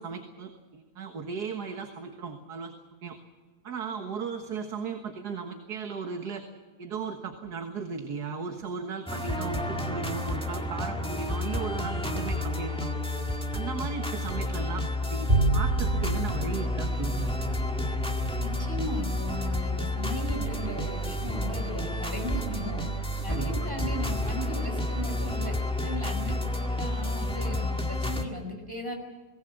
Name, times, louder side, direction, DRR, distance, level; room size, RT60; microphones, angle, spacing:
voice 1, 0.0-2.7 3.0-3.2 3.6-6.4 6.8-12.9 13.5-17.3 23.3-23.6, right 5 dB, 80° right, 5 dB, 2.0 m, -36 dB
sound 1, 9.1-28.2, left 1 dB, 5° left, 1.8 m, -30 dB
Bowed string instrument, 15.3-21.8, right 4 dB, 50° right, 3.2 m, -32 dB
voice 2, 18.4-22.9 23.2-28.9, equal, 15° right, 3 dB, 4.9 m, -37 dB
23.5 x 19.0 x 7.6 m, 1.3 s
omnidirectional pair, 1.7 m